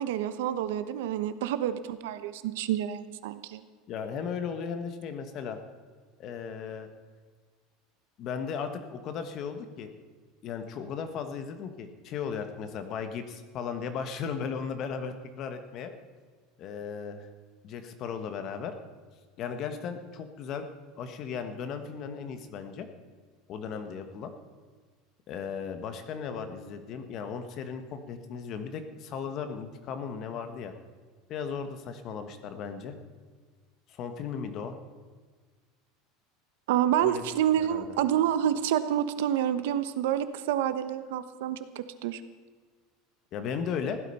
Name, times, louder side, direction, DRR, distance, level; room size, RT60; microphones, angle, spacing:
voice 1, 0.0-3.6 36.7-42.2, right 10 dB, 80° right, 12 dB, 1.0 m, -28 dB
voice 2, 3.9-5.6 6.2-6.9 8.2-9.9 10.4-15.9 16.6-17.3 17.6-18.7 19.4-20.7 21.0-22.9 23.5-24.3 25.3-30.7 31.3-32.9 33.9-34.8 37.0-37.3 37.6-38.0 43.3-44.0, left 6 dB, 35° left, 8 dB, 1.3 m, -36 dB
16.0 x 12.0 x 5.5 m, 1.5 s
cardioid pair, 180°, 0 cm